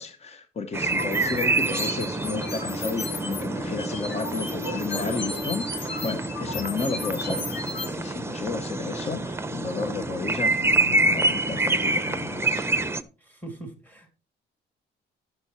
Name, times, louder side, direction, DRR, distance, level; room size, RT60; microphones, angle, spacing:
voice 1, 0.0-7.5 7.8-12.7, left 4 dB, 30° left, 1.0 m, -33 dB
sound 1, 0.7-13.0, right 2 dB, 10° right, 0.8 m, -27 dB
sound 2, 0.9-3.4 3.8-7.9, left 3 dB, 60° left, 2.5 m, -35 dB
Wind instrument woodwind instrument, 2.5-7.7, left 1 dB, 80° left, 4.1 m, -41 dB
voice 2, 6.4-6.8 13.2-14.1, right 2 dB, 10° left, 2.7 m, -42 dB
14.5 x 6.8 x 3.1 m
cardioid pair, 90°, 20 cm